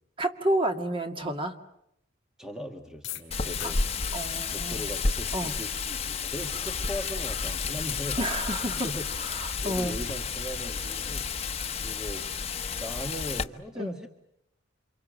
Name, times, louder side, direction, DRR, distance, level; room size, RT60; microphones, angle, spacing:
voice 1, 0.2-1.6 3.6-3.7 4.1-4.8 5.3-5.6 8.2-8.9 9.2-10.0 13.8-14.0, right 1 dB, 25° right, 4 dB, 2.2 m, -30 dB
voice 2, 2.4-4.2 4.5-8.2 8.6-9.0 9.6-11.3 11.8-12.3 12.8-14.1, equal, 5° right, 3 dB, 1.7 m, -39 dB
sound 1, 2.9-10.1, left 8 dB, 60° left, 3.8 m, -47 dB
Wind, 3.3-13.4, left 5 dB, 30° left, 1.0 m, -31 dB
29.0 x 27.0 x 7.7 m, 0.78 s
head